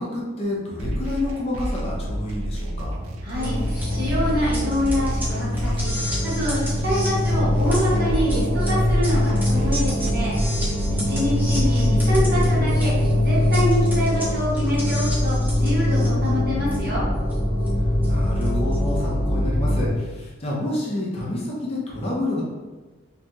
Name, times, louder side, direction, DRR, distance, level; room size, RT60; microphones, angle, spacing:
voice 1, 0.0-3.0 11.1-11.5 17.7-22.4, left 1 dB, 30° left, -4 dB, 0.5 m, -29 dB
sound 1, 0.8-12.8, right 1 dB, 90° right, 0.4 m, -30 dB
voice 2, 3.2-10.4 10.9-17.1, equal, 50° right, -8 dB, 1.1 m, -26 dB
sound 2, 3.3-19.9, left 1 dB, 10° right, 0.6 m, -22 dB
2.8 x 2.6 x 2.3 m, 1.2 s
head